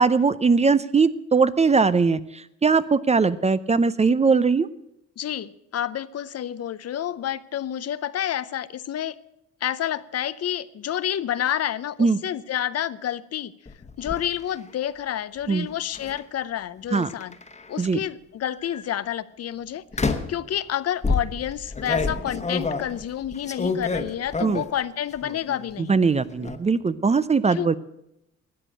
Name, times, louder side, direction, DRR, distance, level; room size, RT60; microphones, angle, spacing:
voice 1, 0.0-4.7 12.0-12.2 15.5-15.7 16.9-17.1 17.8-18.0 24.4-24.6 25.8-27.8, right 4 dB, 20° right, 0.5 m, -20 dB
voice 2, 5.2-9.2 9.6-13.5 14.0-17.4 17.7-26.0 27.5-27.8, left 10 dB, 55° left, 0.6 m, -29 dB
sound 1, 13.7-14.2 15.9-16.2 17.0-17.8 18.5-18.8 19.9-20.4 21.0-24.8 25.2-25.7 26.0-26.6, left 4 dB, 25° left, 1.2 m, -28 dB
13.0 x 8.3 x 8.9 m
cardioid pair, 90°, 30 cm